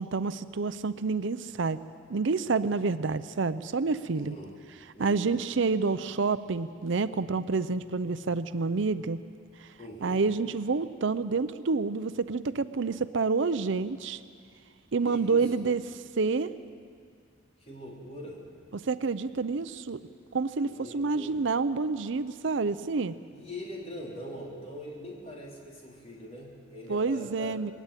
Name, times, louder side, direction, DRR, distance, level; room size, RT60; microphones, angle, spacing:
voice 1, 0.0-1.8 2.1-4.4 5.0-9.2 9.6-9.7 10.0-14.2 14.9-15.8 16.2-16.5 18.7-20.0 20.3-23.1 26.9-27.7, right 4 dB, 60° right, 13 dB, 0.5 m, -28 dB
voice 2, 4.1-4.6 4.9-5.4 9.8-10.2 15.0-15.7 17.6-18.4 20.6-21.4 23.3-27.6, equal, 30° left, -2 dB, 4.0 m, -42 dB
21.0 x 17.5 x 9.1 m, 2.2 s
head